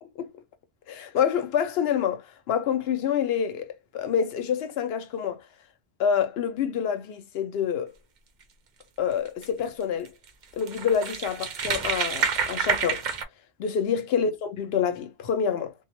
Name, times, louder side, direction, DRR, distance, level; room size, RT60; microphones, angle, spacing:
voice 1, 0.9-5.4 6.0-7.9 9.0-10.1 10.5-13.0 13.6-15.7, left 7 dB, 65° left, 0.7 m, -27 dB
sound 1, 9.3-9.5 10.1-10.2 10.4-13.2, right 6 dB, 55° right, 0.5 m, -28 dB
2.7 x 2.0 x 2.9 m
omnidirectional pair, 1.2 m